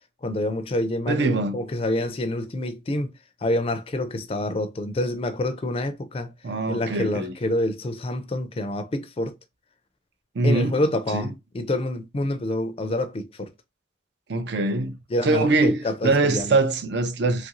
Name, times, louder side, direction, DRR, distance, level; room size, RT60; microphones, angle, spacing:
voice 1, 0.2-3.1 3.4-6.3 6.7-9.3 10.4-13.5 15.1-16.6, left 1 dB, 30° left, 0.4 m, -27 dB
voice 2, 1.1-1.6 6.4-7.3 10.3-10.8 11.1-11.3 14.3-15.0 15.2-17.5, right 2 dB, 60° right, 0.5 m, -23 dB
3.0 x 2.5 x 2.8 m
head